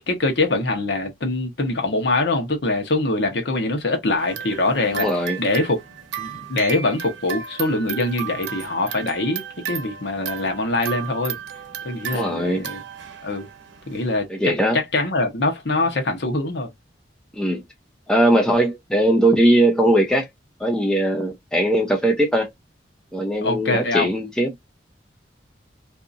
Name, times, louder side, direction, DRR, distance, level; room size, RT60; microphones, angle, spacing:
voice 1, 0.0-5.1 5.4-5.8 6.2-11.4 11.8-12.8 13.2-13.5 13.9-16.7 23.4-24.1, left 2 dB, 65° left, 1.0 m, -23 dB
sound 1, 4.2-14.2, right 8 dB, 80° right, 0.7 m, -34 dB
voice 2, 4.9-5.4 12.1-12.7 14.3-14.8 17.3-17.6 18.1-20.3 20.6-22.5 23.1-24.5, right 1 dB, 5° left, 0.5 m, -20 dB
2.7 x 2.5 x 2.4 m
head